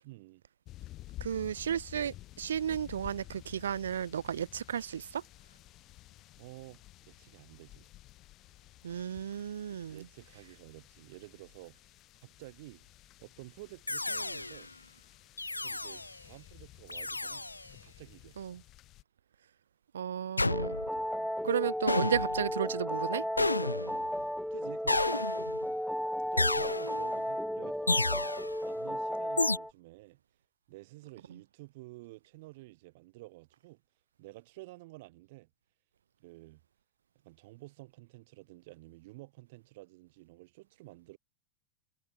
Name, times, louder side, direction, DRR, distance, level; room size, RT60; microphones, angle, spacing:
voice 1, 0.0-0.4 6.4-7.9 9.9-12.9 13.2-14.7 15.6-17.5 17.8-18.6 24.1-25.3 26.3-28.2 28.6-30.2 30.7-33.8 34.2-35.5 36.2-36.6 37.2-41.2, right 21 dB, 50° right, 7.2 m, -51 dB
sound 1, 0.7-19.0, left 16 dB, 35° left, 7.3 m, -53 dB
voice 2, 1.2-5.2 8.8-10.1 18.4-18.6 19.9-20.8 21.4-23.2 31.3-31.4, right 8 dB, 65° right, 0.5 m, -33 dB
sound 2, 13.9-14.7 15.4-16.2 16.9-17.7 20.4-21.0 21.9-22.5 23.4-24.1 24.9-25.7 26.4-27.1 27.9-28.6 29.4-29.6, left 2 dB, 85° left, 0.5 m, -31 dB
sound 3, 20.5-29.7, equal, ahead, 0.9 m, -34 dB
figure-of-eight pair, 90°, 0 cm